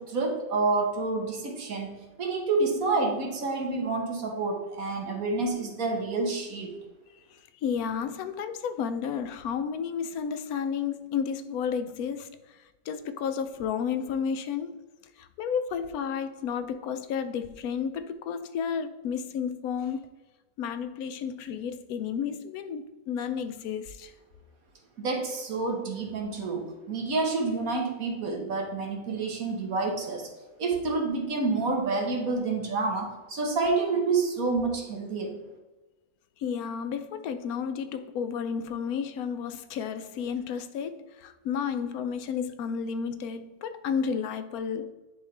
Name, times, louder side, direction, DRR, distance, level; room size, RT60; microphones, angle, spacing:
voice 1, 0.0-6.8 25.0-30.3 30.6-35.4, right 3 dB, 70° right, 1.7 m, -28 dB
voice 2, 7.3-12.6 12.9-14.8 15.2-20.1 20.6-24.1 36.4-44.9, left 7 dB, 85° left, 1.1 m, -32 dB
10.5 x 3.5 x 3.3 m
omnidirectional pair, 1.5 m